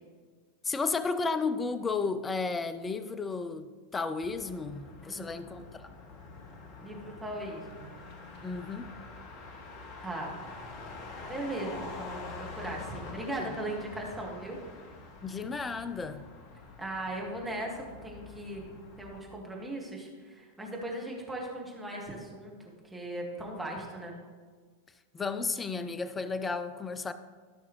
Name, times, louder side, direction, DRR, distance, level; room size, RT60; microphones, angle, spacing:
voice 1, 0.6-5.9 8.4-8.9 13.4-13.5 15.2-16.2 25.1-27.1, left 4 dB, 15° left, 11 dB, 0.5 m, -33 dB
Motor vehicle (road), 4.2-19.2, left 3 dB, 40° left, 1.1 m, -46 dB
voice 2, 6.8-7.9 10.0-10.3 11.3-14.6 16.8-18.7 19.0-24.1, right 1 dB, 5° right, -2 dB, 1.8 m, -38 dB
14.5 x 5.9 x 3.1 m, 1.5 s
figure-of-eight pair, 90°, 0 cm